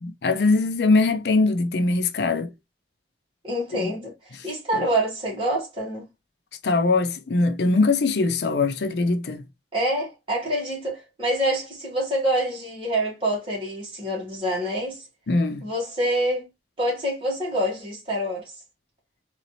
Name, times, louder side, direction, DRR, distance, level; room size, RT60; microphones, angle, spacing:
voice 1, 0.0-2.5 3.7-3.9 4.4-4.5 4.7-4.8 6.6-9.4 15.3-15.6, left 3 dB, 65° left, 0.5 m, -22 dB
voice 2, 3.4-6.1 9.7-15.0 15.6-16.5 16.8-18.4, right 1 dB, 30° right, 1.9 m, -26 dB
3.9 x 2.8 x 3.0 m
head